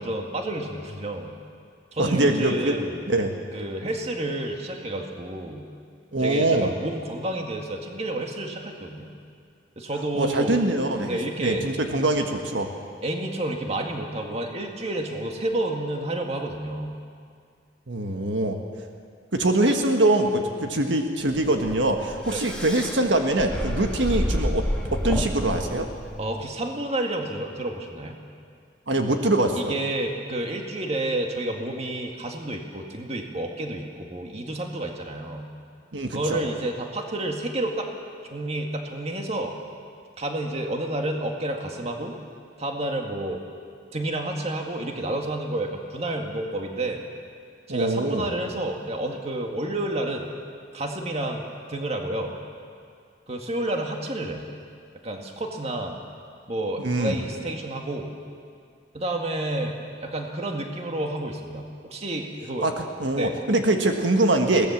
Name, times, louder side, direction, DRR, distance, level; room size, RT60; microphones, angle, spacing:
voice 1, 0.0-1.3 1.9-3.1 3.5-5.7 6.2-9.1 9.8-10.6 11.1-11.7 13.0-16.9 22.3-22.5 26.2-28.2 29.6-35.5 36.1-37.9 38.3-39.6 40.2-42.2 42.6-43.4 43.9-47.0 47.7-50.3 50.7-52.3 53.3-54.4 55.0-56.0 56.5-58.1 58.9-62.7 63.1-63.4, right 1 dB, 35° right, 2 dB, 2.0 m, -30 dB
voice 2, 2.0-2.8 3.1-3.3 6.1-6.7 10.1-12.7 17.9-18.6 19.3-24.6 24.9-25.9 28.9-29.7 35.9-36.4 47.7-48.3 56.8-57.2 62.6-64.7, right 2 dB, 80° right, 4 dB, 1.5 m, -23 dB
sound 1, 21.3-26.4, equal, 5° left, 1.6 m, -30 dB
22.0 x 17.5 x 7.3 m, 2.2 s
head